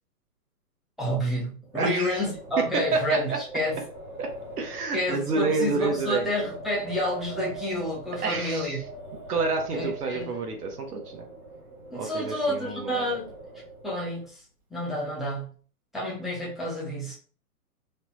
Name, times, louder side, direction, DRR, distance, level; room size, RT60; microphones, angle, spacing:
voice 1, 1.0-3.8 4.9-8.8 9.7-10.3 11.9-13.3 13.8-14.4 14.7-15.5 15.9-17.1, equal, ahead, 0.3 m, -29 dB
Wind, 1.6-14.2, right 2 dB, 25° right, 0.7 m, -43 dB
voice 2, 1.7-2.2 2.7-3.4 4.2-4.3 4.6-6.3 8.2-8.8 9.3-11.2 11.9-13.1, right 4 dB, 70° right, 0.8 m, -28 dB
3.2 x 2.0 x 3.0 m
hypercardioid pair, 170°, 47 cm